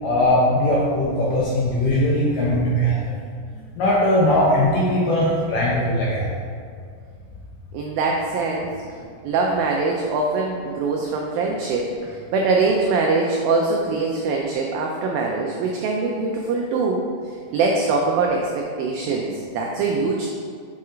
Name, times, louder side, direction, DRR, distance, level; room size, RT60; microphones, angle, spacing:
voice 1, 0.0-3.1 3.8-6.3, left 1 dB, 75° left, -6 dB, 2.0 m, -20 dB
voice 2, 7.7-8.7 9.3-20.3, right 3 dB, 90° right, 0 dB, 2.0 m, -23 dB
7.5 x 4.3 x 3.7 m, 2.2 s
omnidirectional pair, 4.8 m